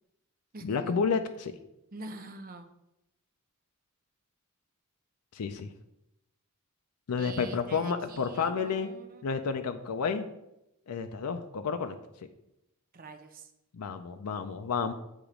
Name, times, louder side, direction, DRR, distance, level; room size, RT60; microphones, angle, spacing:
voice 1, 0.6-1.5 5.3-5.7 7.1-8.9 9.2-10.3 10.9-12.0 13.7-14.9, left 5 dB, 90° left, 7 dB, 0.5 m, -30 dB
voice 2, 1.9-2.7 7.2-9.2 12.9-13.4, right 2 dB, 40° right, 7 dB, 0.6 m, -45 dB
8.2 x 3.0 x 5.0 m, 0.86 s
head